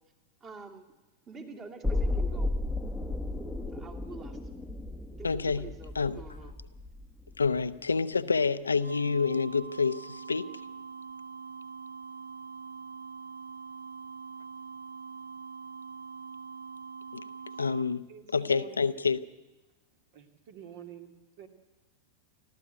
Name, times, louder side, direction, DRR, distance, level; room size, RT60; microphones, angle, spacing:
voice 1, 0.4-0.9 1.3-2.5 3.7-4.4 5.2-6.5, right 4 dB, 25° right, 3 dB, 2.7 m, -46 dB
sound 1, 1.8-7.8 8.1-8.2, left 2 dB, ahead, 1.2 m, -34 dB
voice 2, 5.2-6.2 7.4-10.6 17.1-17.2 17.6-19.2, left 5 dB, 75° left, 12 dB, 0.6 m, -28 dB
sound 2, 8.8-17.8, right 5 dB, 70° right, 0.6 m, -43 dB
voice 3, 18.1-18.8 20.1-21.1 21.4-21.5, right 8 dB, 50° right, 7 dB, 2.4 m, -47 dB
28.5 x 13.0 x 8.2 m, 1.1 s
figure-of-eight pair, 90°, 0 cm